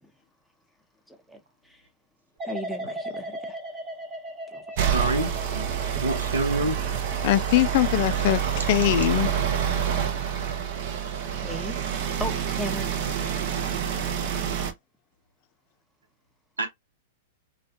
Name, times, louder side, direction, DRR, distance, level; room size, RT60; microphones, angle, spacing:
voice 1, 1.1-1.8 2.4-3.6 4.5-4.6 11.4-13.4, equal, ahead, 0.7 m, -38 dB
sound 1, 2.4-9.3 9.7-10.2, right 1 dB, 20° right, 0.9 m, -39 dB
sound 2, 4.8-14.7, right 8 dB, 55° right, 0.6 m, -27 dB
voice 2, 4.8-5.7 6.0-6.8 16.6-16.7, right 2 dB, 85° right, 0.7 m, -27 dB
voice 3, 7.2-9.4, left 15 dB, 55° left, 0.3 m, -22 dB
2.4 x 2.1 x 2.6 m
hypercardioid pair, 105°, 0 cm